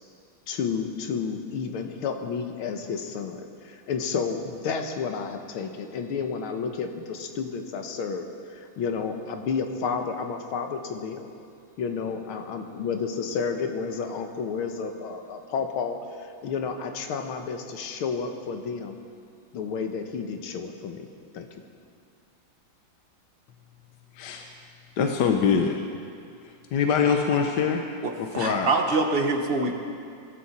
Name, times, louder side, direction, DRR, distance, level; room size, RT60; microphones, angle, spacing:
voice 1, 0.5-11.3 11.8-19.0 19.5-21.1 21.3-21.5, left 5 dB, 90° left, 5 dB, 1.9 m, -31 dB
voice 2, 24.1-24.5 25.0-25.8 26.4-27.8 28.2-28.7, left 6 dB, 60° left, 3 dB, 1.3 m, -24 dB
voice 3, 28.0-29.7, right 3 dB, 35° right, 3 dB, 1.0 m, -25 dB
21.0 x 12.5 x 4.3 m, 2.4 s
omnidirectional pair, 2.3 m